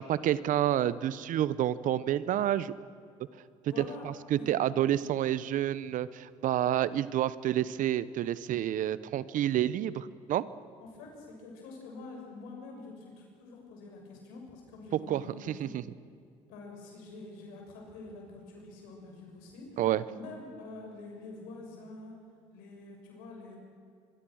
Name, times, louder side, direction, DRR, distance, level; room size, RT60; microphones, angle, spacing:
voice 1, 0.0-2.7 3.8-10.5 15.1-15.8 19.8-20.0, right 12 dB, 65° right, 17 dB, 1.0 m, -29 dB
voice 2, 3.7-4.0 4.3-4.5 10.8-15.7 16.5-19.8 20.1-22.2 22.5-23.6, left 3 dB, 85° left, 0 dB, 6.7 m, -46 dB
25.0 x 23.0 x 6.4 m, 2.4 s
supercardioid pair, 65°, 14 cm